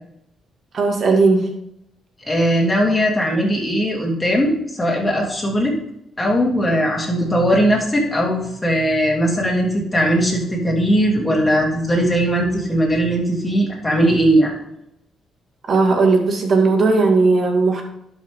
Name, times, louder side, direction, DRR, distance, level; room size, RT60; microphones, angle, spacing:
voice 1, 0.7-1.5 15.7-17.8, right 3 dB, 50° right, 2 dB, 2.1 m, -16 dB
voice 2, 2.3-5.7 6.2-14.5, equal, 15° left, -3 dB, 3.0 m, -19 dB
11.5 x 5.9 x 3.7 m, 0.80 s
cardioid pair, 95°, 0 cm